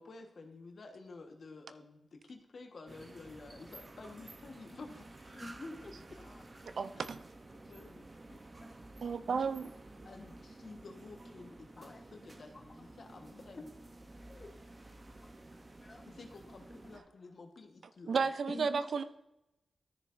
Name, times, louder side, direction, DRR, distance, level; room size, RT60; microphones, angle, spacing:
voice 1, 0.0-5.4 6.9-7.1 7.7-8.4 10.0-13.7 16.1-18.3, left 3 dB, 65° left, 4 dB, 1.4 m, -52 dB
sound 1, 2.9-17.0, right 2 dB, 35° right, 0.8 m, -53 dB
voice 2, 5.3-7.1 7.5-7.8 8.6-8.7 9.5-9.7 10.0-10.2 11.8-12.0 12.8-12.9 13.3-13.7 14.0-16.1 16.8-17.3 18.5-18.8, left 2 dB, 40° left, 4 dB, 1.3 m, -51 dB
voice 3, 6.8-7.2 9.0-9.8 18.1-19.0, right 5 dB, 75° right, 12 dB, 0.5 m, -33 dB
13.0 x 6.7 x 2.6 m, 0.94 s
cardioid pair, 70°, 0 cm